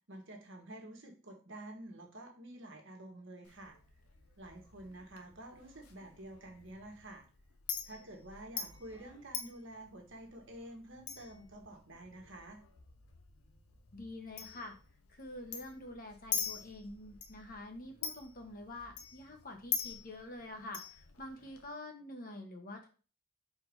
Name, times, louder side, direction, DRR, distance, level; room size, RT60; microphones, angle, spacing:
voice 1, 0.1-3.8 4.4-7.2 7.8-12.6, right 1 dB, 55° right, 2 dB, 1.4 m, -49 dB
Chink clink, 3.4-21.7, left 7 dB, 90° left, 0.9 m, -45 dB
voice 2, 13.9-14.8 15.1-22.9, left 1 dB, 40° left, 3 dB, 1.1 m, -47 dB
4.8 x 4.2 x 5.2 m, 0.36 s
head